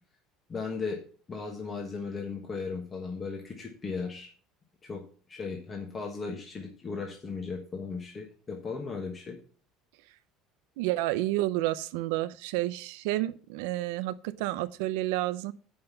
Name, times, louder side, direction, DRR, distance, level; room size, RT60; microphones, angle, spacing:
voice 1, 0.5-1.0 1.3-4.3 4.8-5.0 5.3-9.4, left 4 dB, 20° left, 2 dB, 1.2 m, -36 dB
voice 2, 10.8-15.5, right 16 dB, 90° right, 12 dB, 0.5 m, -30 dB
7.7 x 5.6 x 6.8 m, 0.42 s
cardioid pair, 160°, 0 cm